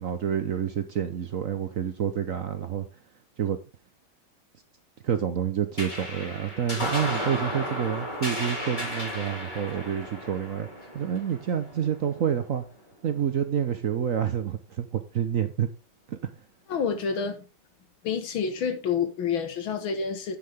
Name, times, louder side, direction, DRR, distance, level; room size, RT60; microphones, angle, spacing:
voice 1, 0.0-2.8 3.4-3.6 5.0-10.7 10.9-12.6 13.0-15.7 16.1-16.2, right 8 dB, 55° right, 1.0 m, -28 dB
sound 1, 5.8-12.5, left 1 dB, 20° left, 3.7 m, -34 dB
voice 2, 16.7-17.4 18.0-20.4, left 6 dB, 80° left, 2.2 m, -28 dB
9.7 x 8.6 x 3.5 m
omnidirectional pair, 2.1 m